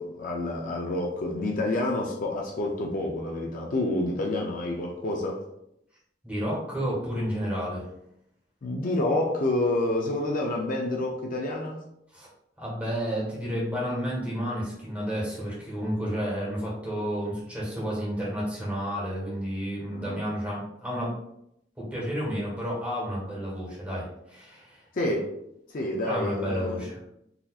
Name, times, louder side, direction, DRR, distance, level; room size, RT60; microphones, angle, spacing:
voice 1, 0.0-5.4 8.6-11.8 19.9-20.2 24.9-25.3 25.7-26.8, left 2 dB, 50° left, 0 dB, 0.4 m, -28 dB
voice 2, 6.2-7.8 12.1-12.3 12.6-21.1 21.8-24.8 26.1-27.0, equal, 10° right, -6 dB, 1.3 m, -31 dB
4.0 x 2.7 x 2.3 m, 0.79 s
head